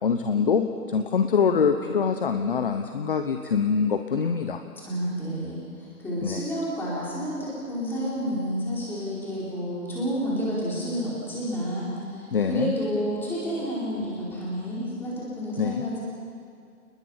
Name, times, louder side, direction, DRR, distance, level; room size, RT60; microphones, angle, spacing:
voice 1, 0.0-4.6 6.2-6.4 12.3-12.7 15.6-15.9, left 6 dB, 35° left, 7 dB, 0.9 m, -24 dB
voice 2, 4.8-16.0, equal, 5° left, -7 dB, 4.6 m, -30 dB
29.0 x 20.0 x 5.8 m, 2.3 s
hypercardioid pair, 160°, 47 cm